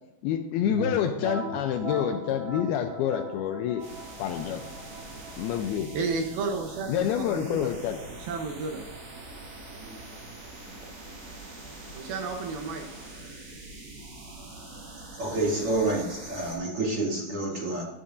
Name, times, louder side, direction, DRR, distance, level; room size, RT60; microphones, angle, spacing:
voice 1, 0.2-3.8 4.2-4.6 5.4-5.9 6.9-8.0, left 10 dB, 85° left, 5 dB, 2.3 m, -27 dB
sound 1, 0.6-10.2, right 2 dB, 15° right, 2.9 m, -40 dB
sound 2, 3.8-16.5, right 2 dB, 85° right, 7.1 m, -44 dB
voice 2, 5.9-7.7 8.1-8.8 9.8-10.0 11.9-12.8, right 4 dB, 70° right, 3 dB, 2.6 m, -32 dB
voice 3, 15.2-17.8, right 2 dB, 40° right, -4 dB, 2.6 m, -28 dB
14.5 x 11.5 x 2.6 m, 1.0 s
omnidirectional pair, 4.9 m